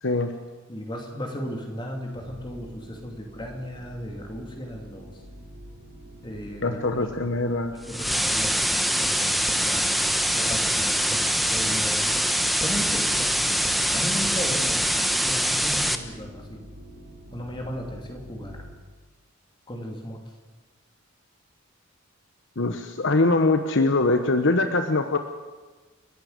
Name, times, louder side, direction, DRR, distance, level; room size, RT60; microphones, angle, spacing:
voice 1, 0.0-0.4 6.6-7.8 22.6-25.2, left 2 dB, 60° left, 7 dB, 1.1 m, -23 dB
voice 2, 0.7-5.2 6.2-7.3 7.7-12.1 12.5-16.7 17.3-18.6 19.7-20.2, equal, 20° left, 2 dB, 2.7 m, -36 dB
sound 1, 2.1-18.7, equal, 45° right, 5.6 m, -45 dB
sound 2, 7.9-15.9, equal, ahead, 1.0 m, -24 dB
30.0 x 11.5 x 8.0 m, 1.3 s
head